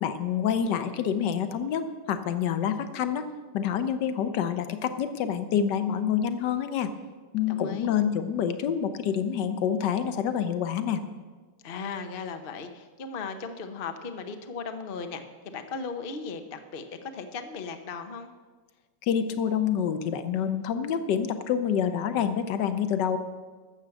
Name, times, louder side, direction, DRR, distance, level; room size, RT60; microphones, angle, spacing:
voice 1, 0.0-3.3 3.5-6.9 7.3-11.0 19.0-23.2, left 8 dB, 65° left, 10 dB, 1.3 m, -27 dB
voice 2, 7.4-7.9 11.6-18.3, left 5 dB, 80° left, 7 dB, 0.5 m, -37 dB
12.5 x 7.1 x 7.8 m, 1.4 s
omnidirectional pair, 2.4 m